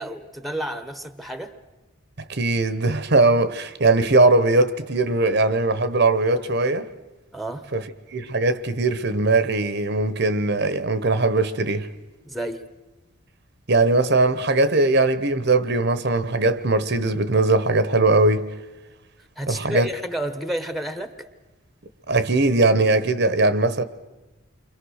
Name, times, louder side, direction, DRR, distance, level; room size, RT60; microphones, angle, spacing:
voice 1, 0.0-1.5 7.3-7.7 12.2-12.6 19.4-21.3, right 1 dB, ahead, 1.2 m, -30 dB
voice 2, 2.3-6.9 7.7-7.8 8.1-11.9 13.7-18.5 19.5-19.9 22.1-23.8, right 2 dB, 55° right, 1.0 m, -20 dB
29.5 x 24.5 x 6.5 m
head